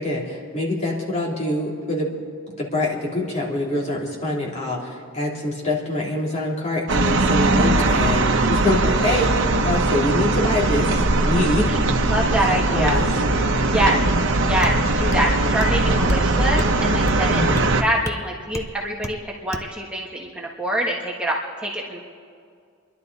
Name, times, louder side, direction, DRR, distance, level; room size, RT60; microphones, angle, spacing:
voice 1, 0.0-2.1 2.5-4.9 5.1-11.7 12.5-13.1 17.3-17.6, left 1 dB, 35° left, -4 dB, 3.0 m, -25 dB
sound 1, 6.9-17.8, right 2 dB, 65° right, 1.1 m, -20 dB
voice 2, 12.1-13.0 13.7-14.0 14.4-22.0, right 1 dB, 5° right, -3 dB, 1.3 m, -25 dB
sound 2, 14.6-14.8 15.1-15.3 15.6-15.8 16.1-16.3 16.6-16.8 17.1-17.2 17.6-17.7 18.1-18.2 18.5-18.7 19.0-19.2 19.5-19.7, left 1 dB, 15° left, 0.7 m, -32 dB
29.5 x 11.5 x 4.1 m, 2.2 s
head